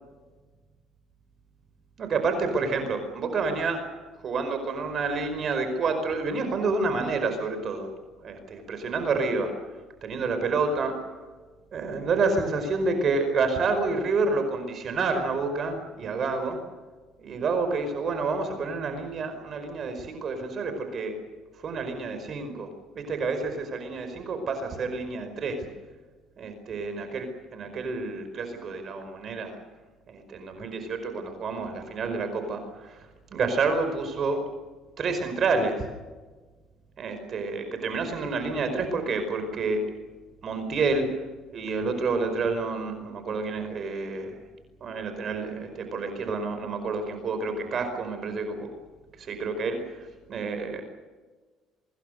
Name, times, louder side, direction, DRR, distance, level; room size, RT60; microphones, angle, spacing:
voice 1, 2.0-3.8 4.2-7.9 8.2-9.5 10.0-11.0 11.7-16.6 17.2-21.2 21.6-22.7 22.9-25.7 26.4-29.6 30.1-33.0 33.3-34.4 35.0-35.8 37.0-39.9 40.4-41.1 41.5-44.4 44.8-48.7 49.2-50.8, right 4 dB, 45° right, 7 dB, 5.0 m, -29 dB
25.5 x 21.0 x 6.6 m, 1.3 s
cardioid pair, 110°, 0 cm